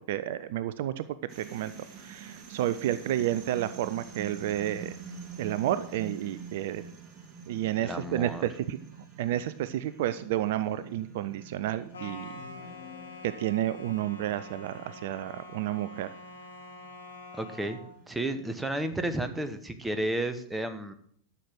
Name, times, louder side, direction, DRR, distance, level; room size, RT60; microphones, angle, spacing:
voice 1, 0.1-1.1 1.4-1.7 2.0-4.9 5.4-6.8 7.5-8.8 9.2-12.3 13.2-16.1, right 12 dB, 55° right, 14 dB, 0.5 m, -31 dB
sound 1, 1.3-19.8, right 6 dB, 30° right, 1.9 m, -48 dB
voice 2, 7.8-8.4 17.3-17.8 18.1-20.9, right 1 dB, 5° right, 9 dB, 1.1 m, -32 dB
sound 2, 11.9-17.9, left 2 dB, 70° left, 2.2 m, -46 dB
sound 3, 12.2-13.8, left 9 dB, 50° left, 1.7 m, -51 dB
11.5 x 6.9 x 6.2 m, 0.63 s
figure-of-eight pair, 90°, 0 cm